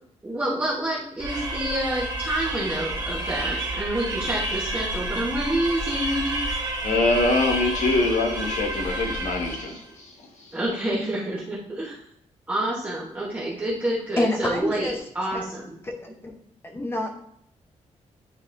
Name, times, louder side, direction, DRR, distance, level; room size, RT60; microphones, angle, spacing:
voice 1, 0.2-6.4 10.5-12.0 12.5-15.8, right 1 dB, 15° right, -7 dB, 1.2 m, -28 dB
sound 1, 1.2-9.8, right 1 dB, 35° right, 1.2 m, -30 dB
voice 2, 6.8-10.5, left 2 dB, 75° left, 2 dB, 1.4 m, -24 dB
voice 3, 14.2-15.0 15.3-15.4 15.8-15.9 16.2-16.3 16.6-17.1, left 1 dB, 20° left, 2 dB, 0.8 m, -27 dB
9.7 x 4.1 x 2.6 m, 0.69 s
wide cardioid pair, 175°, 12 cm